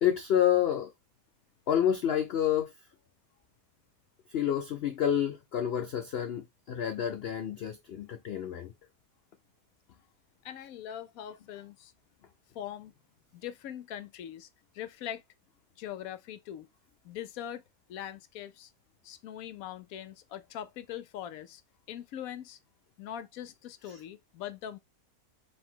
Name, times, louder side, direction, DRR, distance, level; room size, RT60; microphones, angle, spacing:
voice 1, 0.0-0.9 1.7-2.7 4.3-8.7 23.9-24.0, left 10 dB, 90° left, 0.5 m, -29 dB
voice 2, 10.4-11.9 12.5-12.9 13.3-14.5 14.7-15.2 15.8-16.7 17.0-17.6 17.9-18.7 19.0-21.6 21.9-22.6 23.0-24.8, left 10 dB, 70° left, 0.9 m, -41 dB
4.6 x 2.7 x 3.6 m
omnidirectional pair, 1.7 m